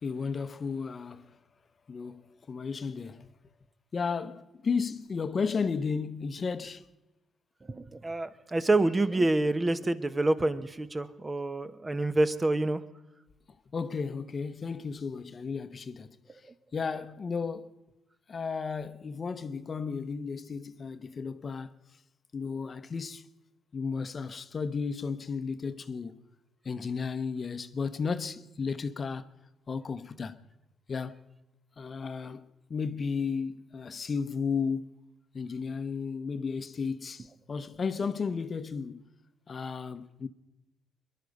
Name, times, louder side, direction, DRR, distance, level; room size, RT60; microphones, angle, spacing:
voice 1, 0.0-1.4 1.9-2.2 2.5-3.3 3.9-6.8 13.7-16.1 16.7-17.7 18.3-21.7 22.3-23.3 23.7-26.2 26.6-29.3 29.7-30.4 30.9-31.2 31.8-34.9 35.3-39.0 39.5-40.3, left 5 dB, 40° left, 0.8 m, -33 dB
voice 2, 7.7-12.8, right 2 dB, 20° right, 1.0 m, -27 dB
23.0 x 11.5 x 5.3 m
cardioid pair, 90°, 0 cm